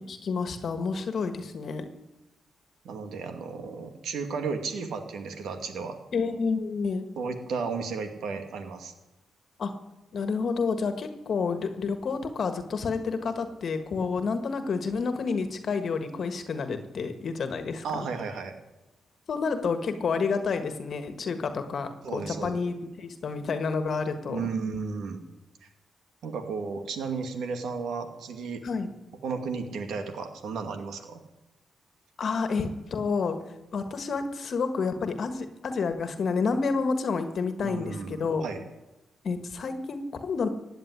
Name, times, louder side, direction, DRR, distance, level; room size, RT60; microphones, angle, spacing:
voice 1, 0.1-1.9 6.1-7.1 9.6-9.7 10.1-18.1 19.3-24.5 28.6-28.9 32.2-33.4 33.7-38.4 39.2-40.5, left 4 dB, 60° left, 8 dB, 1.6 m, -29 dB
voice 2, 2.8-6.0 7.2-8.9 17.8-18.6 22.0-22.6 24.3-25.2 25.6-25.7 26.2-28.6 29.2-31.2 37.6-38.6, right 5 dB, 80° right, 7 dB, 2.3 m, -34 dB
16.0 x 9.1 x 9.7 m, 0.99 s
cardioid pair, 80°, 0 cm